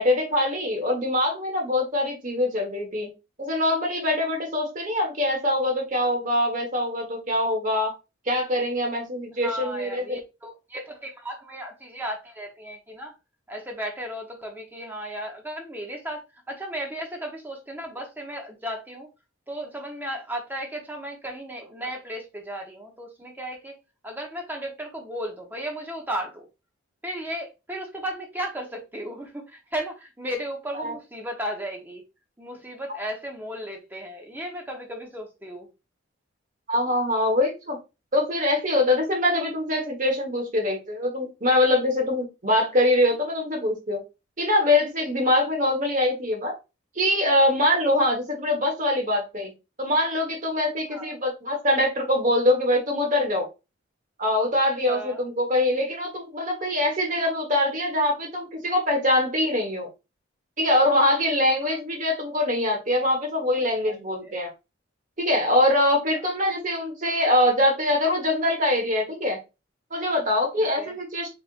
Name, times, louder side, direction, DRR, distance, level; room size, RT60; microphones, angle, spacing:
voice 1, 0.0-3.1 3.4-7.9 8.2-10.2 30.8-30.9 36.7-37.8 38.1-44.0 44.4-46.6 46.9-49.5 49.8-53.5 54.2-59.9 60.6-64.5 65.2-69.4 69.9-71.3, left 1 dB, 40° right, 1.4 m, -23 dB
voice 2, 9.4-13.1 13.5-16.2 16.5-19.1 19.5-23.7 24.0-26.5 27.0-32.0 32.4-35.7 50.9-51.1 54.9-55.2 63.6-64.3 70.6-71.0, equal, 10° right, 1.0 m, -35 dB
4.3 x 3.6 x 2.5 m
head